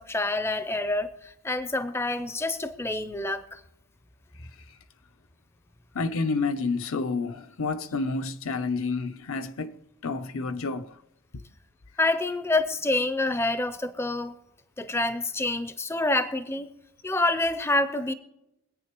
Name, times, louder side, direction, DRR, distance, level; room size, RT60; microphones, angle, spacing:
voice 1, 0.0-3.6 12.0-14.4 14.8-16.7 17.0-18.1, left 2 dB, 10° left, 0.4 m, -27 dB
voice 2, 5.9-9.8 10.0-11.0 11.3-11.4, left 4 dB, 70° left, 0.6 m, -29 dB
24.5 x 8.7 x 3.0 m
head